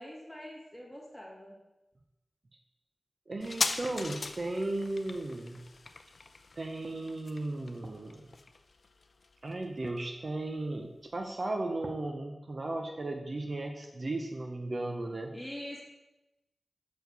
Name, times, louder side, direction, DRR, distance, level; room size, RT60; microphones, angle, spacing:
voice 1, 0.0-1.6 15.3-15.8, left 1 dB, 5° left, -4 dB, 2.3 m, -44 dB
voice 2, 3.3-5.6 6.6-8.3 9.4-15.3, right 2 dB, 50° right, 3 dB, 0.7 m, -35 dB
sound 1, 3.4-10.5 10.8-10.9, left 3 dB, 60° left, 0.5 m, -39 dB
6.4 x 4.6 x 6.6 m, 0.98 s
wide cardioid pair, 95°, 0 cm